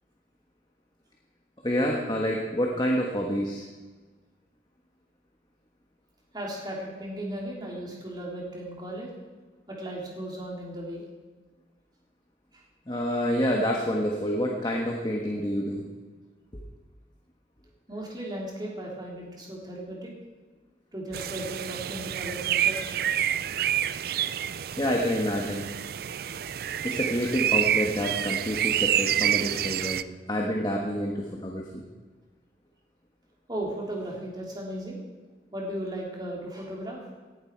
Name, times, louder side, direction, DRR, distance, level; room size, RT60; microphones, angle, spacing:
voice 1, 1.6-3.6 12.9-15.8 24.8-25.6 26.8-31.8, equal, 25° left, 0 dB, 1.4 m, -28 dB
voice 2, 6.3-9.1 9.7-11.0 12.5-12.6 17.9-20.1 20.9-23.1 26.1-26.6 33.5-35.0 35.5-37.0, right 1 dB, 25° right, -2 dB, 3.2 m, -36 dB
sound 1, 21.1-30.0, right 10 dB, 55° right, 0.4 m, -28 dB
18.0 x 11.5 x 4.6 m, 1.3 s
head